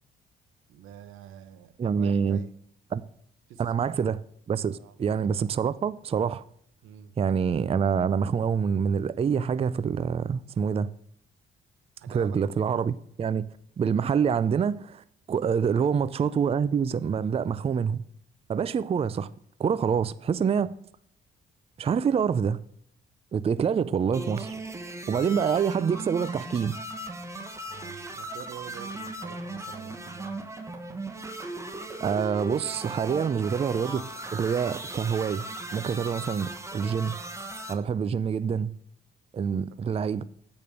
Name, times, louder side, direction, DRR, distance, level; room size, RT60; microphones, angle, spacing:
voice 1, 0.7-2.5 3.5-3.8 4.8-4.9 6.8-7.1 12.0-12.4 15.7-15.9 27.7-30.4 39.5-39.7, right 9 dB, 90° right, 1.0 m, -46 dB
voice 2, 1.8-2.4 2.9-3.0 3.6-4.2 4.5-6.4 7.2-10.9 12.1-13.5 13.8-18.0 18.5-19.3 19.6-20.7 21.8-22.6 23.3-24.5 25.1-26.7 32.0-35.5 35.7-37.2 37.7-38.7 39.3-40.2, right 7 dB, 30° right, 0.4 m, -26 dB
sound 1, 24.1-37.7, right 2 dB, 15° right, 1.3 m, -38 dB
8.8 x 5.2 x 6.4 m
cardioid pair, 90°, 20 cm